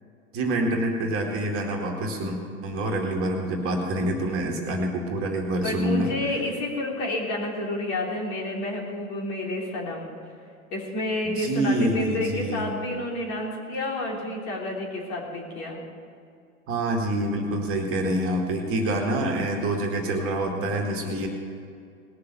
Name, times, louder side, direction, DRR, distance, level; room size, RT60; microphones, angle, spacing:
voice 1, 0.3-6.1 11.4-12.7 16.7-21.3, right 1 dB, 30° right, 1 dB, 2.2 m, -26 dB
voice 2, 5.6-10.1 10.7-15.8 21.0-21.2, left 1 dB, 40° left, -1 dB, 3.5 m, -30 dB
19.5 x 6.8 x 6.9 m, 2.4 s
hypercardioid pair, 110°, 43 cm